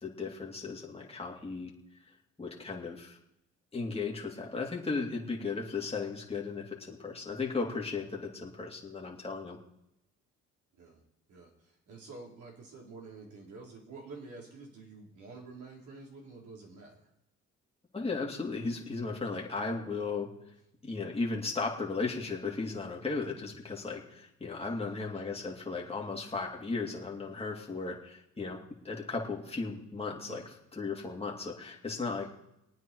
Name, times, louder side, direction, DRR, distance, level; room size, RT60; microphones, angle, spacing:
voice 1, 0.0-1.7 2.4-3.2 3.7-9.6 17.9-20.3 20.8-28.6 28.8-30.4 30.7-32.3, left 4 dB, 20° left, -1 dB, 2.7 m, -36 dB
voice 2, 11.3-17.1 24.6-25.3 30.2-30.5 32.1-32.3, right 3 dB, 75° right, -2 dB, 4.2 m, -49 dB
21.5 x 9.3 x 4.7 m, 0.83 s
cardioid pair, 90°, 30 cm